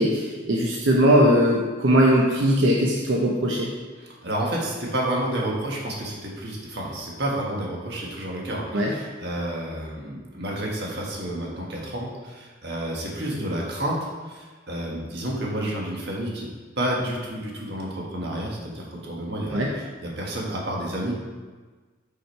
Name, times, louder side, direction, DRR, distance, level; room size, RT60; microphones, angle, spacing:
voice 1, 0.0-3.7 8.7-8.9 19.5-19.7, equal, 85° right, -2 dB, 0.8 m, -20 dB
voice 2, 4.0-16.5 16.8-21.1, right 1 dB, 60° right, -2 dB, 1.4 m, -30 dB
5.6 x 5.0 x 4.5 m, 1.4 s
head